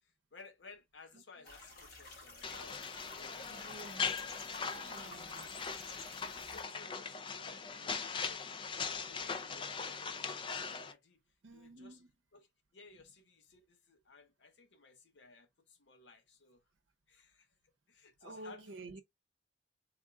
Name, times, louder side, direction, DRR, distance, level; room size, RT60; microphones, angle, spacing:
voice 1, 0.0-3.7 4.5-5.6 6.3-8.6 9.1-10.5 10.9-11.2 11.5-12.0 12.3-12.5 12.7-16.6 17.1-17.5 17.9-18.9, left 4 dB, 70° left, 0.8 m, -58 dB
sound 1, 1.4-6.7, left 2 dB, 50° left, 2.0 m, -52 dB
sound 2, 2.4-10.9, left 5 dB, 25° left, 0.4 m, -40 dB
voice 2, 3.5-4.1 4.6-5.9 11.4-12.1 18.2-19.0, right 2 dB, 80° right, 0.7 m, -51 dB
3.5 x 2.4 x 3.5 m
head